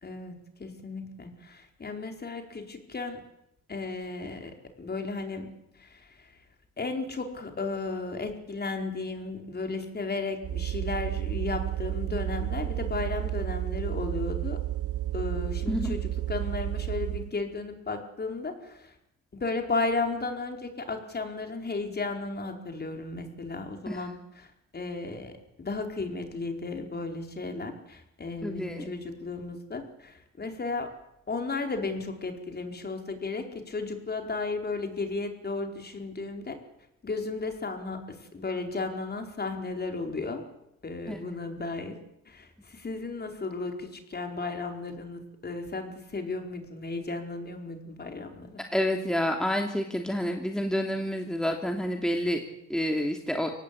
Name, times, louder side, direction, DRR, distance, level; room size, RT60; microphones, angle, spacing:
voice 1, 0.0-3.2 3.7-5.5 5.8-6.3 6.8-14.6 15.1-18.9 19.3-24.5 24.7-30.9 31.3-36.6 37.0-40.4 40.8-41.9 42.3-48.6, left 3 dB, 35° left, 4 dB, 4.8 m, -34 dB
sound 1, 10.4-17.3, right 14 dB, 50° right, 1.8 m, -31 dB
voice 2, 28.4-28.9 41.1-41.2 48.7-52.4 52.7-53.5, equal, ahead, 3 dB, 2.8 m, -28 dB
24.5 x 18.0 x 8.7 m, 0.82 s
cardioid pair, 90°, 30 cm